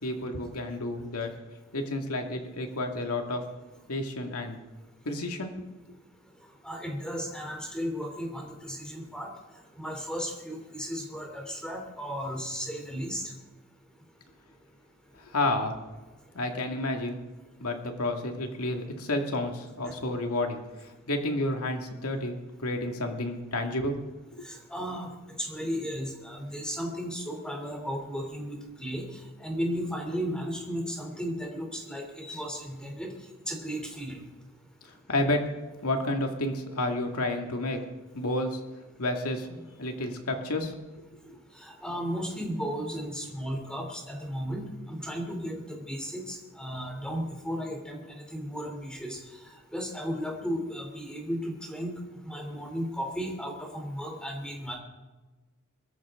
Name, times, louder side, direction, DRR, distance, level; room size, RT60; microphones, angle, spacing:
voice 1, 0.0-1.3 1.7-3.4 3.9-4.6 5.1-5.5 15.2-15.7 16.3-17.2 17.6-24.4 34.8-35.4 35.8-37.8 38.1-38.6 39.0-40.7, left 1 dB, 85° left, 3 dB, 2.2 m, -30 dB
voice 2, 6.6-9.3 9.8-13.2 19.8-19.9 24.4-25.1 25.4-29.1 29.4-33.1 33.5-34.2 41.6-49.2 49.7-51.9 52.2-54.7, equal, 5° left, 0 dB, 3.2 m, -35 dB
22.5 x 14.0 x 3.8 m, 1.2 s
head